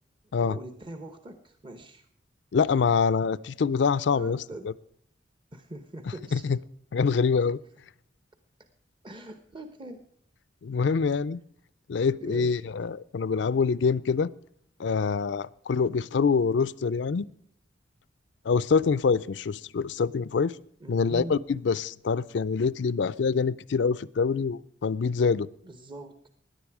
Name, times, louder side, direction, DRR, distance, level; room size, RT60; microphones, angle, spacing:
voice 1, 0.4-2.1 4.1-4.7 5.5-6.4 7.4-7.5 9.0-10.1 12.2-12.6 20.8-21.4 25.6-26.3, right 1 dB, 25° right, 0.9 m, -42 dB
voice 2, 2.5-4.4 4.6-4.7 6.3-6.6 6.9-7.6 10.6-11.4 11.9-14.3 14.8-17.3 18.5-20.6 20.9-25.5, left 5 dB, 70° left, 0.4 m, -25 dB
17.5 x 10.5 x 4.8 m
head